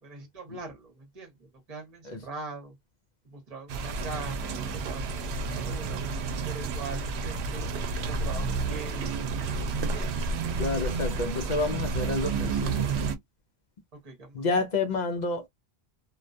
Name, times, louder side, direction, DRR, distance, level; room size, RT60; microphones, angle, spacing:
voice 1, 0.0-2.8 3.2-6.0 6.4-9.3 13.9-14.5, right 3 dB, 40° right, 0.9 m, -42 dB
sound 1, 3.7-13.2, right 4 dB, 85° right, 0.8 m, -30 dB
voice 2, 10.6-12.9 14.3-15.5, left 3 dB, 55° left, 0.5 m, -29 dB
2.3 x 2.2 x 2.4 m
omnidirectional pair, 1.1 m